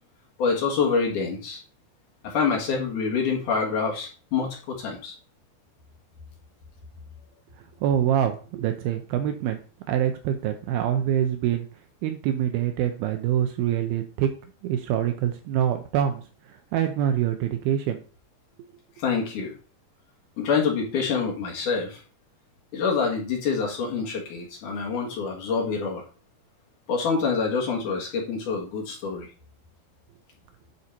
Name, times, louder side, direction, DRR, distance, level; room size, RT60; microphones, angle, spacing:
voice 1, 0.4-1.6 2.2-5.1 19.0-19.5 20.4-22.0 22.7-26.0 26.9-29.3, left 5 dB, 60° left, -1 dB, 2.8 m, -26 dB
voice 2, 7.6-9.6 9.9-11.7 12.0-14.3 14.6-18.0 18.6-18.7, right 10 dB, 80° right, 7 dB, 2.5 m, -25 dB
9.6 x 4.2 x 4.4 m, 0.37 s
omnidirectional pair, 4.4 m